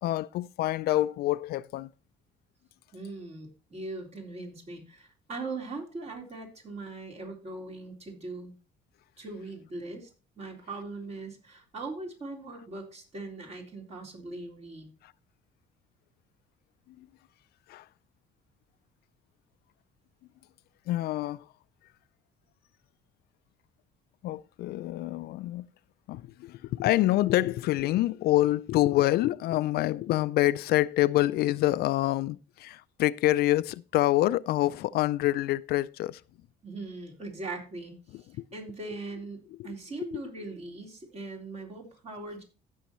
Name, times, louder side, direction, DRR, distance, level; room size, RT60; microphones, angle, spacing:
voice 1, 0.0-1.9 15.0-15.1 17.0-17.1 17.7-17.9 20.9-21.5 24.2-25.7 26.1-36.2 38.1-38.4 40.1-40.2, left 15 dB, 70° left, 0.4 m, -26 dB
voice 2, 2.9-8.5 9.2-10.1 10.4-14.9 36.6-37.9 38.5-42.4, right 3 dB, 40° right, 3.8 m, -40 dB
15.5 x 6.4 x 3.0 m
cardioid pair, 110°, 17 cm